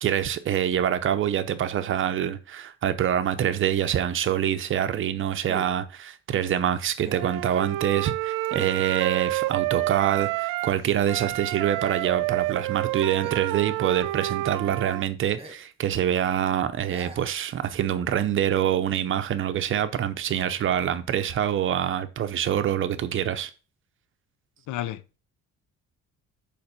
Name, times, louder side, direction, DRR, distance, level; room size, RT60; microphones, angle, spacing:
voice 1, 0.0-23.5, right 10 dB, 40° right, 0.6 m, -25 dB
sound 1, 2.6-2.7 5.5-5.9 7.0-7.4 8.4-8.9 10.6-11.8 12.1-12.2 12.4-13.8 14.1-14.4 14.9-15.0 15.4-15.7 16.0-16.1 16.9-17.4, right 3 dB, 20° right, 1.2 m, -43 dB
Wind instrument woodwind instrument, 7.1-10.8 11.1-15.0, right 18 dB, 90° right, 0.5 m, -29 dB
voice 2, 24.7-25.2, left 13 dB, 70° left, 0.6 m, -32 dB
7.1 x 5.1 x 5.2 m
cardioid pair, 175°, 31 cm